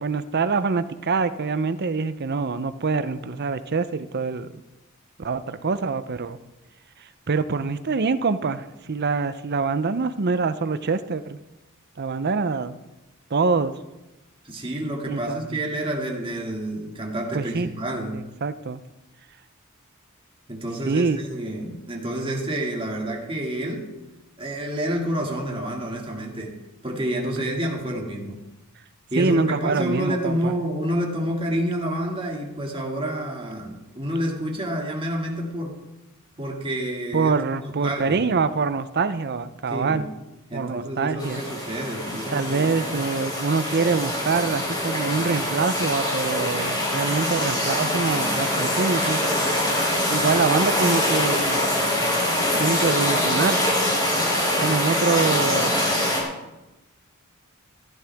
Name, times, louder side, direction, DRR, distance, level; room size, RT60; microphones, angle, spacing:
voice 1, 0.0-4.6 5.2-6.4 7.3-11.4 12.0-12.8 13.3-13.7 15.1-15.6 17.3-17.7 18.1-18.8 20.9-21.2 29.2-30.5 37.1-40.1 40.5-41.4 42.3-49.2 50.1-51.6 52.6-53.6 54.6-55.7, right 4 dB, 50° right, 13 dB, 0.6 m, -25 dB
voice 2, 14.4-18.3 20.5-23.9 24.4-26.6 26.8-28.4 29.1-35.8 36.4-37.3 37.8-38.2 39.7-40.1 40.5-42.9, right 1 dB, 25° right, 0 dB, 2.2 m, -28 dB
sound 1, 41.2-56.2, left 1 dB, 20° left, 3.9 m, -24 dB
15.0 x 12.5 x 3.5 m, 1.0 s
head